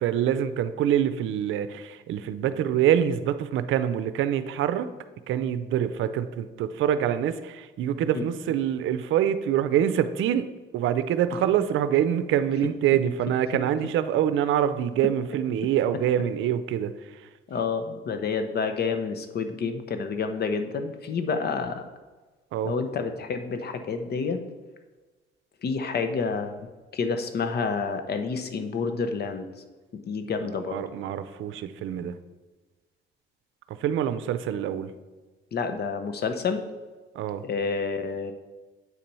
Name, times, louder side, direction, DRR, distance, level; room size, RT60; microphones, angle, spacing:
voice 1, 0.0-4.9 5.3-10.5 10.7-16.9 22.5-22.7 30.7-32.1 33.7-34.9 37.1-37.4, right 10 dB, 80° right, 12 dB, 0.5 m, -25 dB
voice 2, 17.5-21.8 22.6-24.4 25.6-26.7 26.9-29.5 29.9-30.8 35.5-36.6 37.4-38.3, left 5 dB, 55° left, 8 dB, 0.9 m, -29 dB
8.3 x 4.3 x 5.4 m, 1.3 s
cardioid pair, 90°, 20 cm